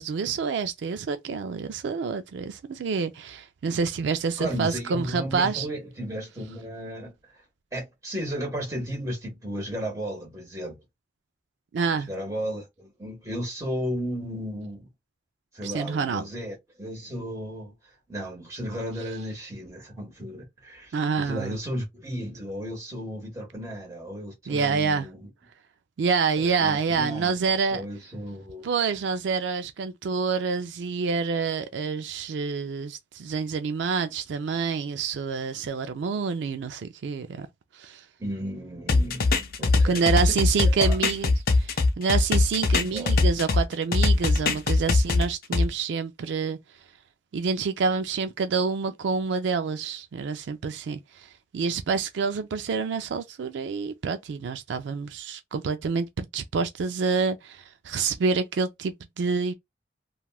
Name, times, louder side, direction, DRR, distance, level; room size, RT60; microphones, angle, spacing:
voice 1, 0.0-5.7 11.7-12.1 15.6-16.2 20.9-21.6 24.5-25.1 26.0-27.8 28.6-37.5 37.7-38.0 39.8-41.3 41.6-46.6 47.3-51.3 51.5-59.5, right 5 dB, 80° right, 0.4 m, -27 dB
voice 2, 4.4-7.4 7.7-10.8 12.1-14.9 15.5-17.7 18.1-25.3 26.4-28.7 38.2-40.3 40.6-41.0 42.9-43.1, equal, 15° right, 1.4 m, -34 dB
sound 1, 38.9-43.6 43.9-45.6, left 3 dB, 50° left, 0.5 m, -21 dB
3.3 x 2.3 x 2.3 m
head